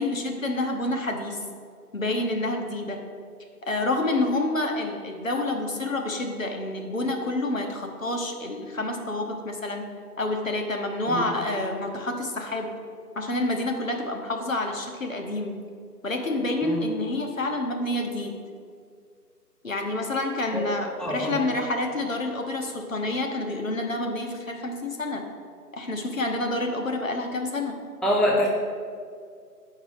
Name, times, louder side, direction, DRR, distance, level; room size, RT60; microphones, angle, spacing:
voice 1, 0.0-1.4 1.9-3.0 3.6-9.9 10.2-12.7 13.2-15.5 16.0-18.4 19.6-25.2 25.7-27.7, left 2 dB, 55° left, 3 dB, 1.0 m, -28 dB
voice 2, 21.0-21.4 28.0-28.5, equal, ahead, -3 dB, 0.4 m, -24 dB
7.5 x 4.7 x 5.0 m, 2.2 s
figure-of-eight pair, 165°, 49 cm